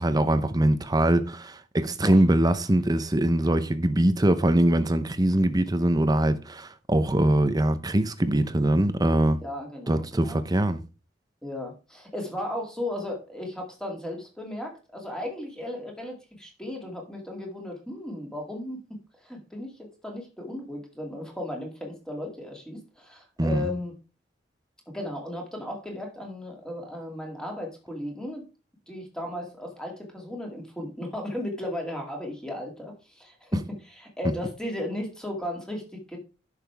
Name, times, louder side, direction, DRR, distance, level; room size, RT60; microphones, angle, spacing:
voice 1, 0.0-9.4 9.9-10.8 23.4-23.7, right 1 dB, 20° right, 0.8 m, -22 dB
voice 2, 9.4-10.4 11.4-18.8 19.2-19.7 20.0-23.9 24.9-28.4 28.9-36.2, left 1 dB, 5° left, 2.4 m, -35 dB
10.5 x 6.6 x 3.5 m
head